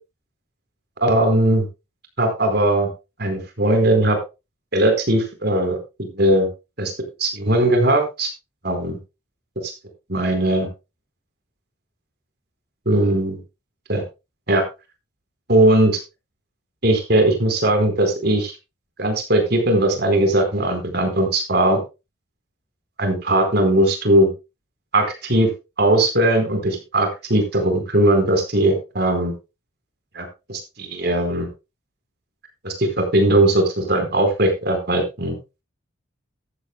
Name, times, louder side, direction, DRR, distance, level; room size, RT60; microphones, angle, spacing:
voice 1, 1.0-1.7 2.2-2.9 3.2-4.2 4.7-6.5 6.8-6.9 7.2-8.3 8.6-9.0 9.6-9.7 10.1-10.7 12.9-13.4 13.9-14.0 14.5-14.6 15.5-16.0 16.8-18.5 19.0-21.8 23.0-24.3 24.9-25.5 25.8-29.3 30.1-31.5 32.6-35.4, right 1 dB, 50° right, 5 dB, 4.4 m, -19 dB
15.0 x 12.0 x 2.2 m, 0.27 s
head